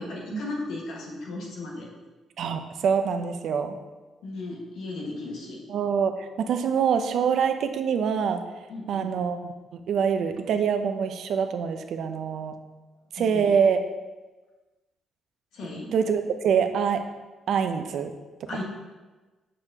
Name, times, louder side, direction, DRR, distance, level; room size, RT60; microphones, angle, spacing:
voice 1, 0.0-1.9 4.2-5.6 8.7-9.1 13.2-13.5 15.5-15.9 18.5-18.6, left 2 dB, 80° left, -3 dB, 1.6 m, -35 dB
voice 2, 2.4-3.8 5.7-8.4 8.9-9.4 9.7-12.5 13.1-13.8 15.9-17.0 17.5-18.1 18.4-18.6, right 7 dB, 70° right, 7 dB, 0.5 m, -25 dB
6.7 x 6.1 x 2.9 m, 1.2 s
cardioid pair, 90°, 0 cm